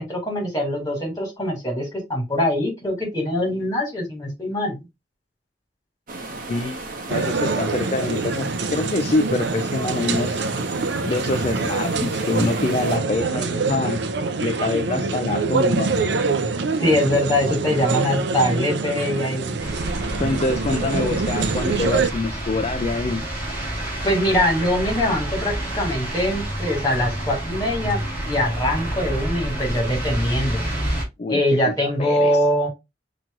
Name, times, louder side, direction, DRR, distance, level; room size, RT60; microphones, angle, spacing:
voice 1, 0.0-4.9 16.8-19.5 24.0-28.0 28.3-30.6 31.3-32.7, left 1 dB, 20° left, 2.2 m, -23 dB
sound 1, 6.1-13.0, right 2 dB, 50° right, 1.1 m, -35 dB
voice 2, 6.3-6.8 7.1-10.5 11.0-14.0 14.4-15.9 20.2-23.3 31.2-32.4, left 3 dB, 35° left, 0.3 m, -25 dB
sound 2, 7.1-22.1, right 4 dB, 65° right, 0.5 m, -25 dB
sound 3, 19.6-31.0, right 1 dB, 10° right, 3.2 m, -28 dB
5.9 x 3.0 x 2.4 m
head